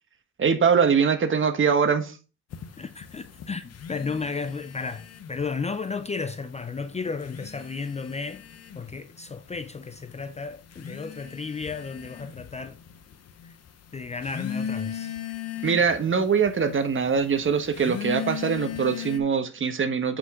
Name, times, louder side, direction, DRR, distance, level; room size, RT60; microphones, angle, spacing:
voice 1, 0.4-2.2 15.6-20.2, right 6 dB, 40° right, 1.3 m, -23 dB
sound 1, 2.5-5.6 5.9-6.6 7.1-19.2, left 8 dB, 55° left, 1.1 m, -38 dB
voice 2, 2.8-8.4 8.7-12.8 13.9-15.2, left 4 dB, 20° left, 0.5 m, -33 dB
8.0 x 5.2 x 3.7 m
cardioid pair, 80°, 31 cm